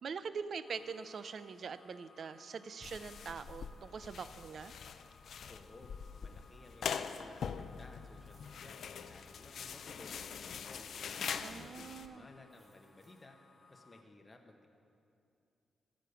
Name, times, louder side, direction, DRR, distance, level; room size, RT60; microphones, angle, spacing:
voice 1, 0.0-4.7 11.4-12.3, right 5 dB, 60° right, 13 dB, 0.4 m, -43 dB
sound 1, 0.6-14.0, left 3 dB, 40° left, 1.0 m, -64 dB
sound 2, 2.8-12.1, left 7 dB, 70° left, 0.4 m, -43 dB
voice 2, 5.5-13.4 13.7-14.7, left 2 dB, 20° left, 3 dB, 1.2 m, -57 dB
sound 3, 8.2-11.3 12.5-13.3, right 2 dB, 40° right, 2.0 m, -72 dB
14.5 x 5.2 x 7.0 m, 2.5 s
cardioid pair, 95°, 0 cm